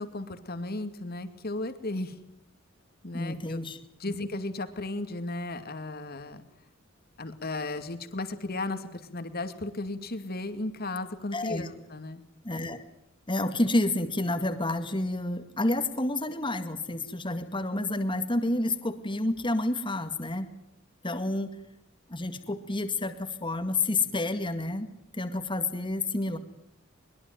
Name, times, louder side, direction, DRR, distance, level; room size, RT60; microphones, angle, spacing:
voice 1, 0.0-2.1 3.0-3.6 4.0-6.4 7.2-12.2, left 2 dB, 50° left, 9 dB, 2.4 m, -35 dB
voice 2, 3.1-3.8 4.1-4.2 11.3-11.7 12.4-12.8 13.3-20.5 21.0-21.5 22.1-24.9 25.1-26.4, left 2 dB, 25° left, 9 dB, 2.1 m, -29 dB
22.5 x 22.0 x 9.3 m, 0.75 s
head